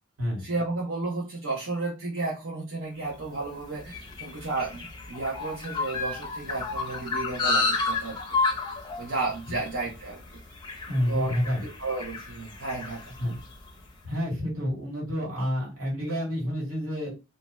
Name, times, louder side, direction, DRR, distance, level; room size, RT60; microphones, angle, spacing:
voice 1, 0.4-8.2 9.0-10.4 11.1-13.1, right 3 dB, 70° right, -5 dB, 0.8 m, -33 dB
sound 1, 3.2-13.8, left 3 dB, 20° left, 0.5 m, -32 dB
voice 2, 10.9-11.7 13.2-13.4 14.0-17.1, equal, 90° right, -3 dB, 1.8 m, -29 dB
2.7 x 2.2 x 3.0 m, 0.27 s
head